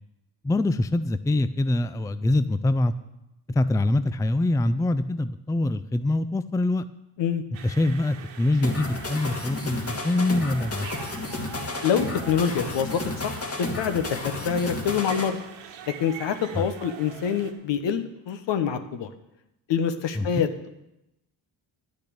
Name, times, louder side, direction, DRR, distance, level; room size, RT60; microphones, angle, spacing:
voice 1, 0.4-2.9 3.5-6.8 7.6-10.9 16.5-16.7 20.2-20.4, left 2 dB, 5° left, 13 dB, 0.5 m, -24 dB
sound 1, 7.5-17.5, right 7 dB, 80° right, 1.6 m, -43 dB
sound 2, 8.6-15.3, left 2 dB, 30° left, 2.2 m, -32 dB
voice 2, 11.8-15.4 15.9-19.1 19.7-20.7, left 7 dB, 70° left, 9 dB, 1.3 m, -26 dB
10.0 x 6.7 x 8.7 m, 0.90 s
supercardioid pair, 65°, 46 cm